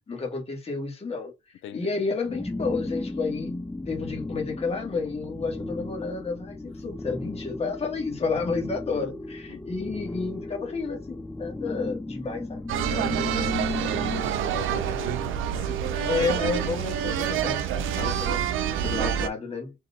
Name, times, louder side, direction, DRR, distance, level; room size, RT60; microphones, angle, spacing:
voice 1, 0.1-1.3 1.7-12.6 16.1-18.4 18.8-19.7, left 4 dB, 30° left, 1.8 m, -31 dB
voice 2, 1.6-2.0 8.9-9.1 9.5-9.6 11.7-11.9 12.9-16.3 17.9-18.2, left 11 dB, 75° left, 0.6 m, -42 dB
sound 1, 2.2-14.2, left 2 dB, 5° left, 0.5 m, -35 dB
sound 2, 12.7-19.3, right 9 dB, 85° right, 0.8 m, -27 dB
3.9 x 2.9 x 4.2 m
cardioid pair, 90°, 20 cm